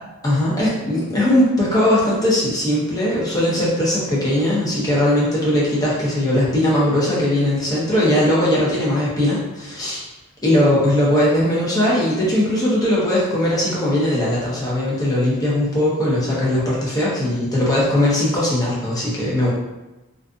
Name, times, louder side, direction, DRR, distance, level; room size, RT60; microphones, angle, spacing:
voice 1, 0.2-10.1 10.4-19.5, left 1 dB, 15° left, -7 dB, 0.7 m, -19 dB
2.5 x 2.4 x 2.4 m, 1.0 s
head